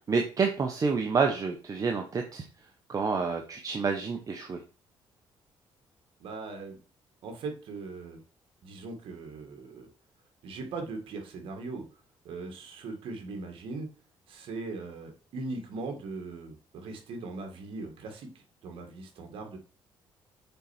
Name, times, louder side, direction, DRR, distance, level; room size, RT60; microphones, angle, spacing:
voice 1, 0.1-2.4 2.9-4.6, right 5 dB, 40° right, 3 dB, 1.1 m, -28 dB
voice 2, 6.2-6.8 7.2-8.2 8.6-9.9 10.4-11.8 12.2-13.9 14.3-19.6, right 3 dB, 75° right, 4 dB, 2.1 m, -39 dB
6.8 x 4.7 x 4.4 m, 0.37 s
cardioid pair, 100°, 9 cm